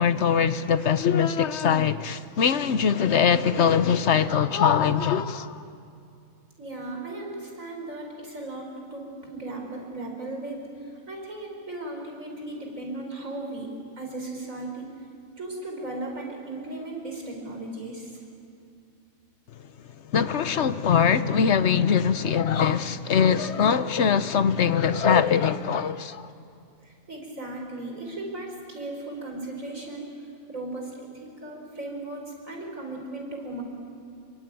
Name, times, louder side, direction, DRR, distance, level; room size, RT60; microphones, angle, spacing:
voice 1, 0.0-5.6 20.1-26.3, left 7 dB, 55° left, 1.1 m, -22 dB
voice 2, 6.6-13.7 14.0-15.1 15.4-18.2 26.8-33.6, right 2 dB, 65° right, 5.5 m, -36 dB
27.0 x 23.5 x 9.2 m
omnidirectional pair, 1.5 m